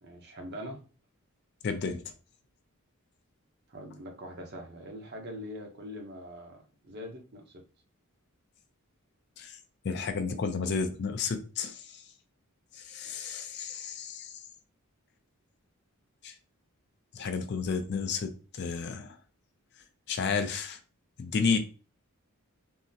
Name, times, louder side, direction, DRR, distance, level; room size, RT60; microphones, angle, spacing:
voice 1, 0.0-0.8 3.7-7.6, equal, 50° right, 0.7 m, -43 dB
voice 2, 1.6-2.0 9.4-9.5 9.8-11.8 12.8-14.3 16.2-16.3 17.1-19.2 20.1-20.8 21.2-21.6, left 5 dB, 50° left, 0.4 m, -31 dB
3.6 x 2.0 x 2.7 m
head